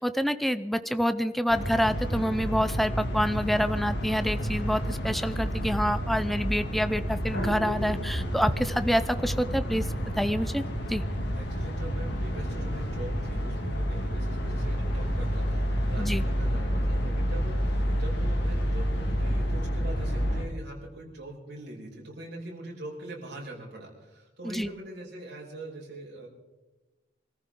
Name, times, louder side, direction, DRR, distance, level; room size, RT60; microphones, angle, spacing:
voice 1, 0.0-9.9 10.2-10.6 10.9-11.0 16.0-16.2 24.4-24.7, equal, ahead, 11 dB, 0.5 m, -27 dB
sound 1, 1.5-20.4, equal, 60° left, 2.6 m, -29 dB
voice 2, 11.3-26.3, right 1 dB, 60° right, -1 dB, 5.1 m, -43 dB
25.5 x 14.5 x 3.8 m, 1.1 s
head